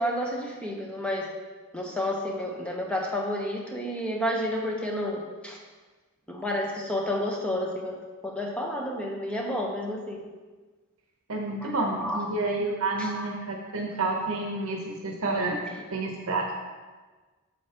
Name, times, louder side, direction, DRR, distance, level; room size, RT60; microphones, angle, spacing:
voice 1, 0.0-1.3 1.7-5.6 6.3-10.2 11.6-11.7 12.0-12.2 13.0-13.3, left 1 dB, 5° left, 0 dB, 0.8 m, -30 dB
voice 2, 11.3-15.6 15.9-16.5, right 2 dB, 70° right, 0 dB, 0.8 m, -29 dB
8.3 x 7.1 x 2.9 m, 1.3 s
head